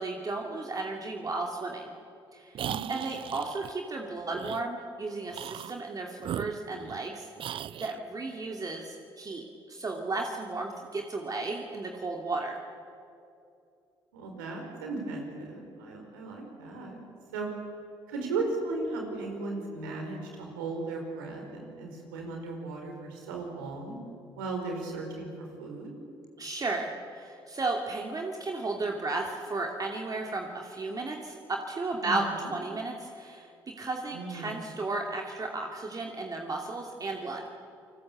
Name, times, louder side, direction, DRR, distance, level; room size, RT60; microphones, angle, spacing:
voice 1, 0.0-1.9 2.3-2.6 2.9-12.6 26.4-37.4, right 3 dB, 35° right, 1 dB, 2.7 m, -34 dB
sound 1, 2.5-3.7 4.4-4.6 5.3-5.8 6.2-7.1 7.4-8.0, right 10 dB, 55° right, 0.6 m, -37 dB
voice 2, 2.6-3.0 14.1-17.0 17.3-17.5 18.1-24.0 24.4-25.9 32.0-32.5 34.1-34.5, right 3 dB, 90° right, 2 dB, 4.7 m, -36 dB
29.5 x 20.0 x 8.1 m, 2.6 s
hypercardioid pair, 55°, 11 cm